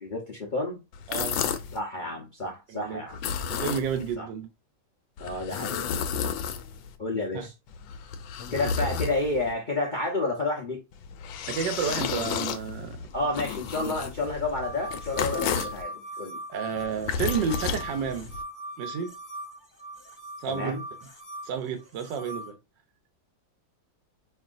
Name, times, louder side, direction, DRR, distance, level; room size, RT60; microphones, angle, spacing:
voice 1, 0.0-0.8 1.7-3.2 4.2-4.3 5.2-5.9 7.0-7.5 8.5-10.8 13.1-16.4 20.5-20.8, left 2 dB, 60° left, 0.4 m, -30 dB
sound 1, 0.9-1.8 3.1-4.2 5.2-7.0 7.7-9.5 10.9-15.8 16.8-18.4, left 7 dB, 80° left, 1.3 m, -32 dB
voice 2, 1.1-1.4 2.7-3.0 3.5-4.5 7.3-7.5 8.6-8.7 11.5-13.1 13.8-14.0 15.4-15.7 16.5-18.3 18.8-19.1 20.4-20.8 21.4-22.6, right 7 dB, 70° right, 1.3 m, -31 dB
sound 2, 14.6-22.5, right 1 dB, 25° left, 1.2 m, -40 dB
5.4 x 2.7 x 2.5 m
omnidirectional pair, 2.2 m